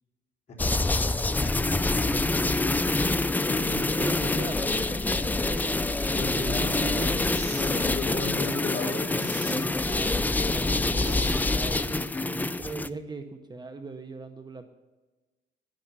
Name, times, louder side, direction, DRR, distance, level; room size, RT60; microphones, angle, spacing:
sound 1, 0.6-12.9, left 2 dB, 10° left, 0.4 m, -26 dB
voice 1, 2.0-2.8 3.2-5.8 6.3-7.3 9.5-14.7, right 3 dB, 20° right, 7 dB, 0.8 m, -39 dB
voice 2, 3.5-4.1 6.1-6.9 7.6-9.3 10.6-10.9, left 3 dB, 35° left, -2 dB, 3.8 m, -35 dB
sound 2, 7.3-7.7 9.1-9.6 10.9-11.7, right 4 dB, 65° right, 5.0 m, -44 dB
11.5 x 10.5 x 8.1 m, 1.2 s
cardioid pair, 130°, 19 cm